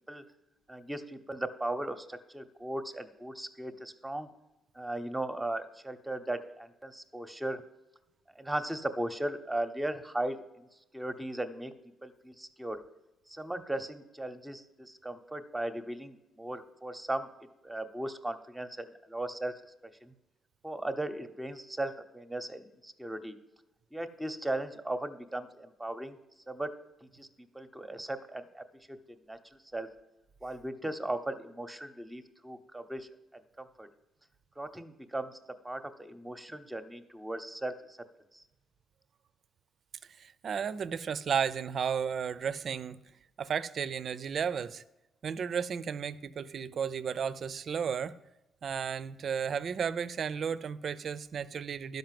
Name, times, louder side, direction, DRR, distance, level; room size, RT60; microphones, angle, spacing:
voice 1, 0.7-4.3 4.7-7.6 8.3-10.7 10.9-11.7 12.0-12.8 13.3-17.3 17.6-19.5 20.0-20.1 20.6-23.4 23.9-26.2 26.5-26.7 27.1-27.3 27.5-29.0 29.3-29.9 30.4-33.1 33.6-33.9 34.6-35.4 35.6-38.0 38.3-38.4, right 1 dB, 10° right, 0.9 m, -37 dB
voice 2, 40.2-43.0 43.4-44.8 45.2-48.2 48.6-52.0, right 7 dB, 55° right, 0.5 m, -33 dB
11.5 x 5.4 x 7.6 m
cardioid pair, 90°, 0 cm